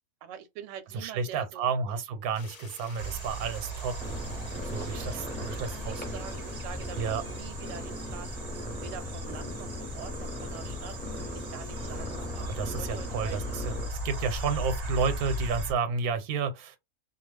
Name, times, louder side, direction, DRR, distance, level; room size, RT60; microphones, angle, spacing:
voice 1, 0.2-1.7 4.7-12.2 12.8-13.4, right 8 dB, 70° right, 0.8 m, -45 dB
voice 2, 0.9-4.0 4.6-6.2 7.0-7.2 12.4-16.8, right 5 dB, 90° right, 1.1 m, -31 dB
sound 1, 2.3-10.3, left 4 dB, 85° left, 0.3 m, -54 dB
sound 2, 3.0-15.7, right 1 dB, 40° right, 0.6 m, -38 dB
sound 3, 4.0-13.9, left 2 dB, 10° left, 0.6 m, -39 dB
2.4 x 2.3 x 3.2 m
omnidirectional pair, 1.5 m